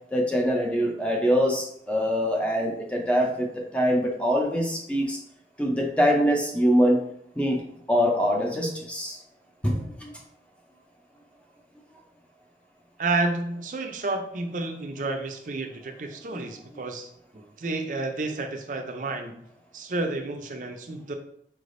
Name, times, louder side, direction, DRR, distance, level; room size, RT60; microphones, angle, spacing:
voice 1, 0.1-5.2 5.6-7.0 7.4-7.6 7.9-9.2 9.6-10.1, equal, 5° left, 0 dB, 0.5 m, -24 dB
voice 2, 13.0-19.4 19.7-21.1, right 2 dB, 45° right, 4 dB, 0.5 m, -30 dB
4.8 x 3.3 x 2.6 m, 0.71 s
head